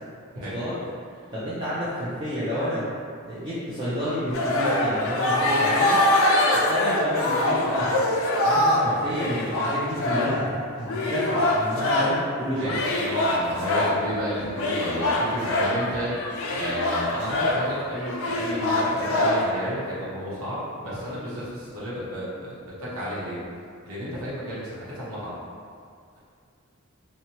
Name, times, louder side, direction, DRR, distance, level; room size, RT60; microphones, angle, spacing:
voice 1, 0.4-0.8 1.3-2.8 3.2-6.0 6.5-8.1 8.4-10.5 10.7-12.8, equal, 20° right, -13 dB, 0.4 m, -29 dB
sound 1, 4.3-12.2 12.7-14.0 14.5-19.6, left 1 dB, 65° left, 0.3 m, -24 dB
voice 2, 12.5-23.4 23.9-25.4, equal, 80° right, -8 dB, 0.9 m, -32 dB
2.7 x 2.1 x 2.8 m, 2.3 s
head